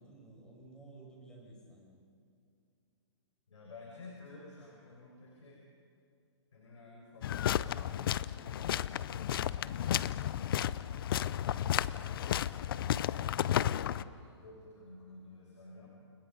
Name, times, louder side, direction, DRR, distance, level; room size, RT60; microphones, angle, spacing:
voice 1, 0.0-1.9 11.5-11.8, right 2 dB, 5° left, -2 dB, 5.4 m, -54 dB
voice 2, 3.5-5.6 6.5-10.3 12.8-15.9, left 2 dB, 90° left, -2 dB, 5.8 m, -53 dB
sound 1, 7.2-14.0, left 11 dB, 50° left, 0.6 m, -33 dB
29.5 x 23.0 x 5.3 m, 2.5 s
hypercardioid pair, 150°, 15 cm